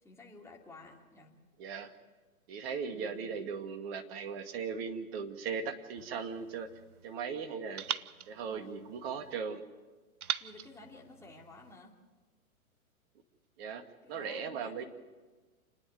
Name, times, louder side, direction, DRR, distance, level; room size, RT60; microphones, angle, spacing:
voice 1, 0.0-1.4 2.9-3.6 7.9-8.7 10.4-12.0 14.0-14.8, left 2 dB, 5° left, -3 dB, 3.0 m, -54 dB
voice 2, 1.6-1.9 2.5-6.7 7.0-7.8 8.3-9.6 13.6-13.8 14.1-14.8, right 6 dB, 45° right, 6 dB, 2.1 m, -38 dB
sound 1, 6.0-7.2 7.8-9.4 10.2-11.8, right 9 dB, 80° right, 0.8 m, -42 dB
29.0 x 10.0 x 9.4 m, 1.3 s
hypercardioid pair, 120°, 44 cm